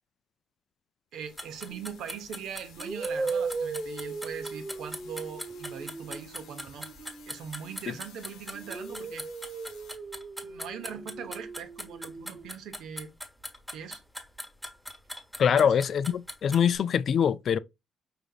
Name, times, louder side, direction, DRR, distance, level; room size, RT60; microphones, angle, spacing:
sound 1, 1.1-10.0, left 7 dB, 85° left, 1.0 m, -55 dB
voice 1, 1.1-6.9 7.3-9.2 10.4-13.1 13.7-14.0 15.5-15.7, right 7 dB, 80° right, 0.8 m, -41 dB
sound 2, 1.4-16.8, equal, ahead, 1.2 m, -40 dB
sound 3, 1.7-2.0 2.8-8.1 8.5-12.5, right 4 dB, 30° right, 1.1 m, -38 dB
voice 2, 15.4-17.6, left 8 dB, 60° left, 0.4 m, -24 dB
5.0 x 3.4 x 2.3 m
cardioid pair, 90°, 0 cm